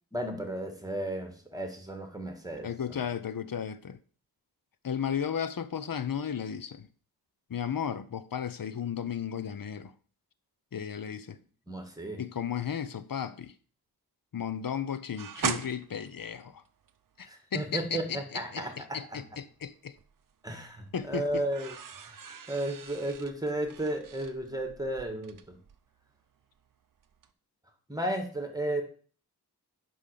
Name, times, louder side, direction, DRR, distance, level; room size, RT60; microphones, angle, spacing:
voice 1, 0.1-3.0 11.7-12.2 17.3-19.2 20.4-22.1 22.5-25.6 27.9-28.8, right 1 dB, 10° right, 1.7 m, -34 dB
voice 2, 2.6-4.0 4.8-6.9 7.5-9.9 10.7-11.4 12.2-13.5 14.3-16.6 17.2-19.9 20.9-21.4, left 8 dB, 60° left, 0.7 m, -34 dB
sound 1, 15.2-17.3 19.5-20.3 20.7-26.7 27.0-27.3, right 7 dB, 55° right, 0.6 m, -40 dB
5.6 x 5.3 x 6.6 m
wide cardioid pair, 60°, 39 cm